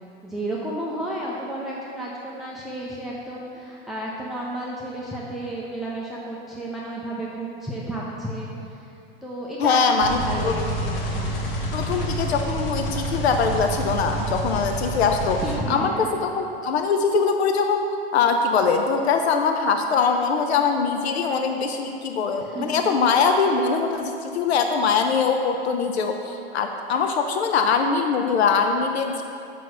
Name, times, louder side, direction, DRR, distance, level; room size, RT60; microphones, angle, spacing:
voice 1, 0.2-8.9 9.2-11.4 15.4-16.2 22.4-22.9, right 1 dB, ahead, -5 dB, 0.6 m, -32 dB
voice 2, 9.6-10.6 11.7-15.4 15.7-17.8 18.1-29.2, left 5 dB, 85° left, 5 dB, 0.7 m, -22 dB
sound 1, 10.0-15.6, right 1 dB, 60° left, 1.4 m, -28 dB
6.1 x 5.8 x 6.1 m, 2.6 s
hypercardioid pair, 130°, 31 cm